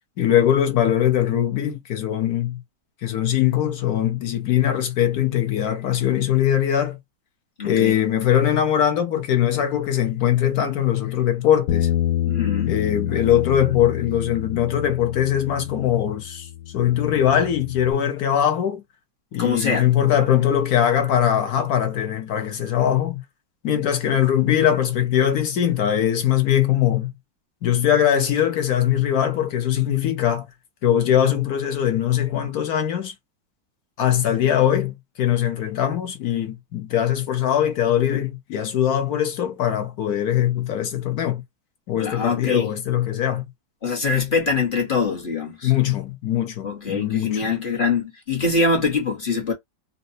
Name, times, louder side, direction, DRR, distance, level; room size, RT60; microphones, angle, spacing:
voice 1, 0.2-2.6 3.0-7.0 7.6-11.9 12.6-18.8 19.3-23.2 23.6-27.1 27.6-30.5 30.8-33.1 34.0-41.4 41.9-43.4 45.6-47.5, left 10 dB, 60° left, 1.1 m, -21 dB
voice 2, 7.6-8.0 12.3-12.7 19.4-19.9 42.0-42.7 43.8-45.7 46.6-49.5, left 4 dB, 40° left, 0.7 m, -23 dB
Bass guitar, 11.7-17.9, left 11 dB, 85° left, 0.7 m, -28 dB
4.1 x 2.1 x 2.7 m
omnidirectional pair, 2.0 m